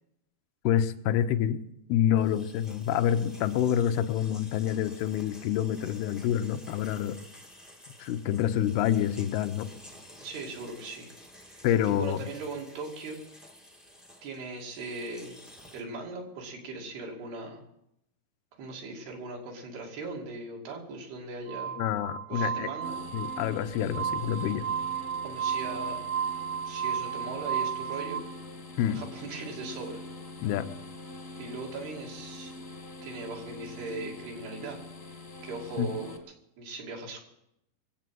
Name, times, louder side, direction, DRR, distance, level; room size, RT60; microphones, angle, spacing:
voice 1, 0.6-1.6 1.9-7.2 8.0-9.7 11.6-12.2 21.8-22.7 23.1-24.7 28.8-29.0 30.4-30.7 35.8-35.9, left 10 dB, 85° left, 9 dB, 2.8 m, -27 dB
sound 1, 2.2-15.8, left 1 dB, ahead, 0.4 m, -52 dB
voice 2, 10.2-13.2 14.2-15.4 15.7-17.6 18.6-21.8 22.3-23.0 25.2-26.1 26.6-28.2 28.9-30.0 31.4-32.6 33.0-34.8 35.0-36.2 36.6-37.2, right 3 dB, 85° right, 0 dB, 4.6 m, -39 dB
Glass, 21.5-28.2, right 8 dB, 65° right, 1.8 m, -33 dB
sound 2, 22.8-36.2, left 2 dB, 45° left, 1.1 m, -44 dB
22.5 x 8.4 x 7.6 m, 0.82 s
omnidirectional pair, 4.5 m